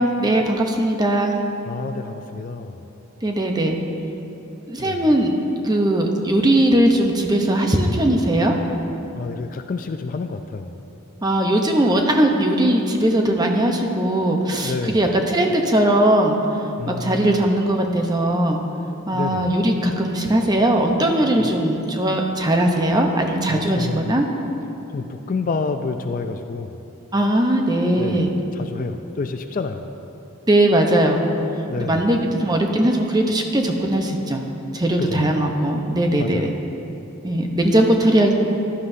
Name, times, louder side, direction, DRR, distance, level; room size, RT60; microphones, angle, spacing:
voice 1, 0.0-1.4 3.2-3.8 4.7-5.3 5.6-8.5 11.2-16.4 16.9-18.6 19.1-24.2 27.1-28.3 30.5-31.2 31.8-34.4 34.7-36.5 37.2-38.3, right 1 dB, 20° right, 2 dB, 0.7 m, -19 dB
voice 2, 1.7-2.9 4.8-5.2 9.1-10.8 14.6-15.0 16.8-17.4 19.1-19.5 21.3-21.5 23.5-24.3 24.9-26.8 28.0-28.3 28.5-29.9 31.7-32.0 35.0-35.3 36.2-36.6, left 4 dB, 40° left, 7 dB, 0.3 m, -29 dB
15.0 x 11.5 x 2.7 m, 3.0 s
head